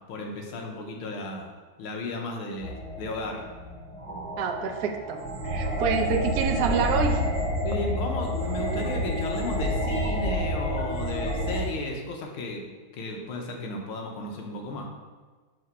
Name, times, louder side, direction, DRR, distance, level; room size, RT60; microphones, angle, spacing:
voice 1, 0.0-1.5 1.8-3.4 7.6-12.6 12.9-14.9, left 2 dB, 75° left, 1 dB, 1.7 m, -34 dB
sound 1, 2.6-11.6, equal, 10° left, 0.4 m, -29 dB
voice 2, 4.4-7.2, right 5 dB, 75° right, 3 dB, 0.9 m, -27 dB
6.1 x 3.0 x 5.5 m, 1.4 s
omnidirectional pair, 2.4 m